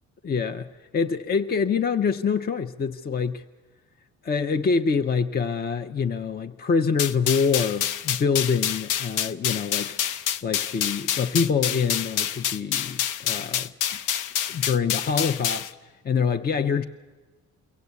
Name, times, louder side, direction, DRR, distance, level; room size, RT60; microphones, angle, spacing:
voice 1, 0.2-3.4 4.2-10.0 10.4-13.7 14.5-15.7 16.0-16.8, left 5 dB, 30° left, 8 dB, 0.6 m, -25 dB
sound 1, 7.0-15.7, left 9 dB, 90° left, 0.6 m, -27 dB
23.5 x 16.0 x 8.2 m, 1.4 s
cardioid pair, 90°, 30 cm